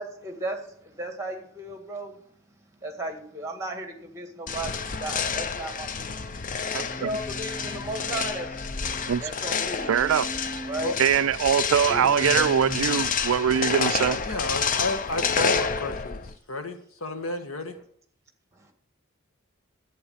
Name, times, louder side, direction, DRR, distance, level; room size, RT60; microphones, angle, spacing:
voice 1, 0.0-2.2 2.8-9.9 10.6-11.0 11.9-12.1 12.4-12.5 18.5-18.7, right 1 dB, 15° right, 2.0 m, -36 dB
sound 1, 4.5-16.4, left 6 dB, 40° left, 0.6 m, -29 dB
Singing, 6.7-9.1 9.8-10.9 11.8-13.2 15.1-15.4, right 1 dB, 20° left, 1.1 m, -39 dB
voice 2, 6.7-7.1 9.1-9.2 9.9-10.3 11.0-14.2, right 8 dB, 70° right, 0.3 m, -22 dB
voice 3, 14.2-17.8, left 2 dB, 75° left, 1.5 m, -31 dB
11.5 x 8.8 x 5.8 m
head